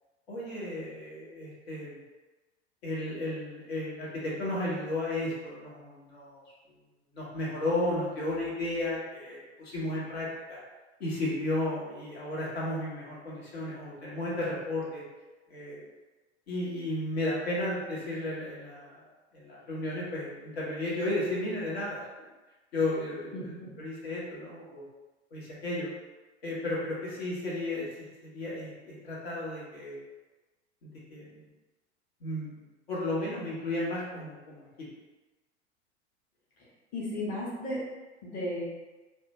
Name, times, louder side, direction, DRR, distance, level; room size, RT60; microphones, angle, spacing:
voice 1, 0.3-2.0 2.8-6.4 7.1-10.6 11.0-15.0 15.5-15.8 16.5-19.0 19.3-22.3 22.7-24.8 25.3-25.9 26.4-30.0 30.8-31.4 32.2-32.5 32.9-34.9, left 1 dB, 60° left, -6 dB, 1.0 m, -34 dB
voice 2, 23.3-23.7 36.9-37.8 38.2-38.6, left 1 dB, 25° left, -7 dB, 0.9 m, -34 dB
2.6 x 2.1 x 2.8 m, 1.1 s
figure-of-eight pair, 90°, 34 cm